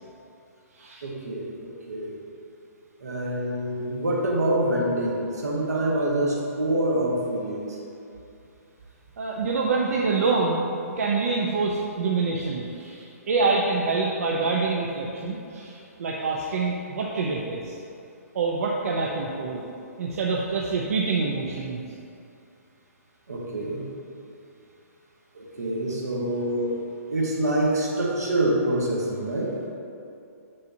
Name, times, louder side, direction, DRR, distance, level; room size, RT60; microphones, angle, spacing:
voice 1, 1.0-2.2 3.0-7.8 23.3-23.9 25.3-26.7 27.1-29.5, right 1 dB, 85° right, -3 dB, 1.3 m, -26 dB
voice 2, 9.2-10.6 11.0-17.8 18.3-19.6 20.0-21.8, right 4 dB, 65° right, -2 dB, 0.6 m, -26 dB
6.5 x 5.5 x 2.7 m, 2.6 s
hypercardioid pair, 135°, 8 cm